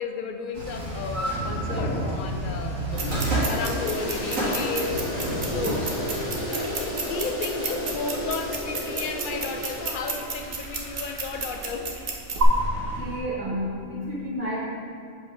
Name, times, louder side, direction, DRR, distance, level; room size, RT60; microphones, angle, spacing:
voice 1, 0.0-2.8 3.4-5.0 5.4-5.8 6.5-11.9, left 5 dB, 55° left, 5 dB, 0.6 m, -33 dB
sound 1, 0.5-7.2 12.3-13.2, right 1 dB, 85° right, 2.6 m, -30 dB
Toilet flush, 2.9-12.2, left 1 dB, 25° left, 1.5 m, -33 dB
sound 2, 2.9-12.4, right 4 dB, 50° right, 1.0 m, -33 dB
voice 2, 12.9-14.5, equal, 10° right, -10 dB, 1.4 m, -31 dB
7.3 x 5.3 x 4.9 m, 2.4 s
omnidirectional pair, 1.3 m